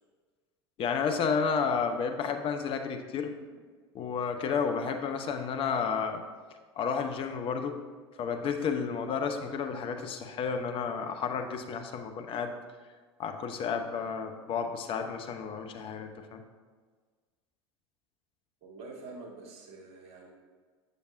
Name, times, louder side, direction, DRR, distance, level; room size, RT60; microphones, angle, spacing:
voice 1, 0.8-3.3 3.9-6.2 6.8-7.8 8.2-12.5 13.2-16.4, left 6 dB, 40° left, 6 dB, 0.8 m, -31 dB
voice 2, 18.6-20.3, right 3 dB, 45° right, -1 dB, 1.9 m, -46 dB
7.4 x 6.7 x 2.6 m, 1.5 s
hypercardioid pair, 80°, 14 cm